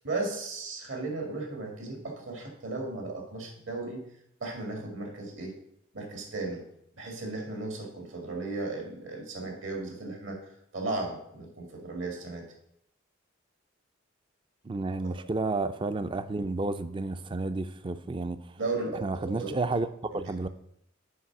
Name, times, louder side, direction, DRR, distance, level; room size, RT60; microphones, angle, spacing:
voice 1, 0.0-4.0 4.4-5.5 5.9-6.6 7.0-10.4 10.7-12.5 15.0-15.1 18.6-19.5 20.1-20.2, right 3 dB, 75° right, 2 dB, 2.2 m, -35 dB
voice 2, 14.6-18.5 19.0-19.9 20.1-20.5, right 3 dB, 25° right, 12 dB, 0.3 m, -31 dB
8.5 x 4.8 x 5.9 m, 0.74 s
head